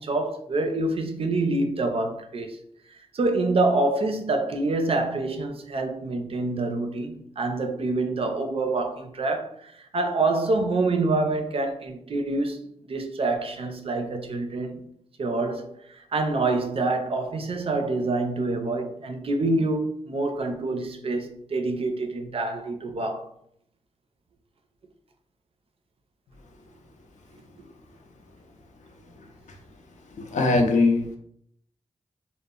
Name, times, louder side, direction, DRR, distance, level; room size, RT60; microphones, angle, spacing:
voice 1, 0.0-2.6 2.9-14.8 15.2-23.3 27.6-27.7, right 2 dB, 50° right, 0.4 m, -26 dB
voice 2, 30.2-31.2, left 3 dB, 80° left, 0.5 m, -21 dB
2.0 x 2.0 x 3.6 m
cardioid pair, 80°, 12 cm